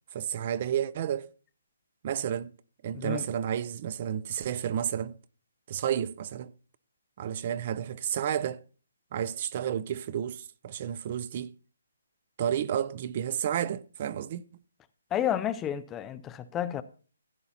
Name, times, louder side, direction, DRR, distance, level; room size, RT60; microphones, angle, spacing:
voice 1, 0.1-1.3 2.0-2.5 2.8-5.2 5.7-6.5 7.2-8.6 9.1-11.5 12.4-14.4, right 9 dB, 40° right, 0.4 m, -31 dB
voice 2, 2.9-3.3 15.1-16.8, left 10 dB, 15° left, 0.4 m, -31 dB
15.0 x 9.8 x 2.8 m
hypercardioid pair, 155°, 0 cm